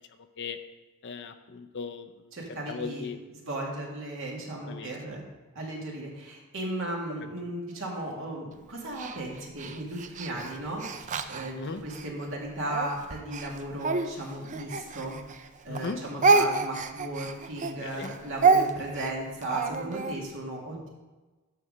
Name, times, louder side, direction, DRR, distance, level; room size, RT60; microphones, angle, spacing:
voice 1, 1.0-2.1 2.7-3.2 4.7-4.9 11.5-11.8 15.7-16.0 17.8-18.1, left 4 dB, 55° left, 7 dB, 0.6 m, -37 dB
voice 2, 2.3-3.1 3.3-5.2 5.5-15.2 15.6-20.9, right 1 dB, 65° right, -3 dB, 2.3 m, -36 dB
Speech, 9.0-12.1 12.7-15.5 15.7-20.2, right 4 dB, 35° right, 0.5 m, -27 dB
11.0 x 4.2 x 6.4 m, 1.2 s
head